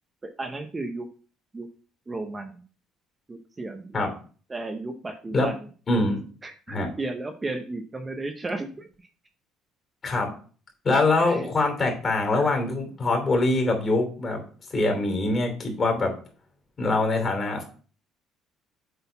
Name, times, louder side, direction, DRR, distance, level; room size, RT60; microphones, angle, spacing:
voice 1, 0.2-1.1 1.5-1.7 2.1-2.6 3.3-4.0 4.5-5.7 6.4-9.1 10.9-11.5 12.3-12.5, right 2 dB, 15° right, 5 dB, 0.7 m, -34 dB
voice 2, 5.9-6.2 6.7-6.9 10.0-10.3 10.8-14.4 14.7-16.1 16.8-17.6, left 2 dB, 30° left, 2 dB, 3.1 m, -23 dB
8.1 x 3.9 x 5.6 m, 0.40 s
cardioid pair, 140°, 0 cm